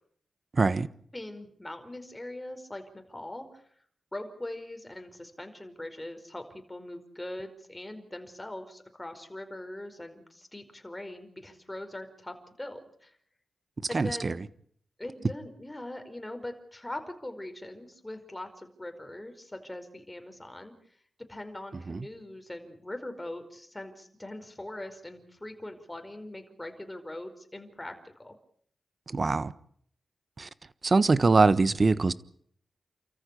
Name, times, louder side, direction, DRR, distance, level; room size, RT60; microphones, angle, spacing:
voice 1, 0.5-0.9 13.9-14.3 21.9-22.0 29.1-29.5 30.4-30.5 30.8-32.1, right 3 dB, 45° right, 1.2 m, -23 dB
voice 2, 1.1-3.6 4.1-13.1 13.9-14.4 15.0-20.7 21.3-28.4, left 1 dB, 15° left, 4.9 m, -41 dB
29.0 x 14.5 x 8.4 m
cardioid pair, 60°, 0 cm